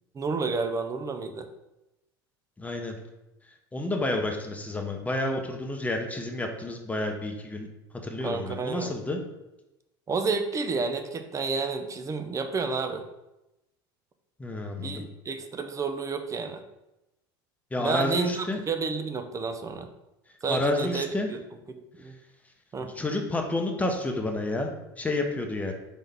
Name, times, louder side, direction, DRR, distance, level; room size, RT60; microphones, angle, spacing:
voice 1, 0.1-1.5 8.2-8.9 10.1-13.0 14.8-16.6 17.8-19.9 20.4-21.4 22.0-22.1 22.7-22.9, right 4 dB, 25° right, 7 dB, 0.5 m, -30 dB
voice 2, 2.6-3.0 3.7-7.7 8.0-9.2 14.4-15.1 17.7-18.6 20.5-21.3 22.8-24.7 25.0-25.7, left 2 dB, 10° left, 3 dB, 0.8 m, -30 dB
4.1 x 3.7 x 3.4 m, 0.95 s
hypercardioid pair, 85°, 12 cm